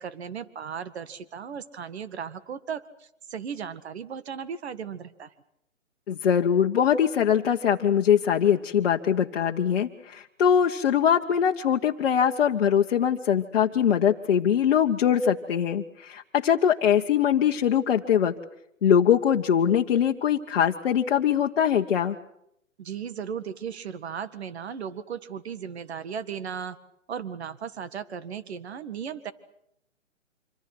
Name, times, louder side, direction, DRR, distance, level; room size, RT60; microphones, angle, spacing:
voice 1, 0.0-5.3 22.8-26.8 27.1-29.3, right 7 dB, 55° right, 13 dB, 2.0 m, -36 dB
voice 2, 6.1-18.3 18.8-22.1, left 8 dB, 50° left, 1 dB, 1.4 m, -22 dB
26.5 x 26.5 x 6.1 m, 0.75 s
hypercardioid pair, 150°, 39 cm